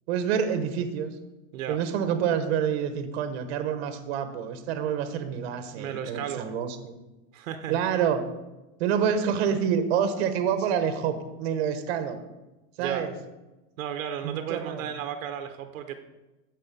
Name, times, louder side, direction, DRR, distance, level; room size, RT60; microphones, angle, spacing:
voice 1, 0.1-1.1 1.7-6.9 7.7-8.2 8.8-12.2 12.8-13.1 14.2-14.9, right 8 dB, 50° right, 8 dB, 1.2 m, -27 dB
voice 2, 5.7-6.5 7.3-7.8 12.8-13.1 13.8-15.9, right 9 dB, 70° right, 7 dB, 1.1 m, -34 dB
15.0 x 5.3 x 5.3 m, 1.1 s
supercardioid pair, 170°, 42 cm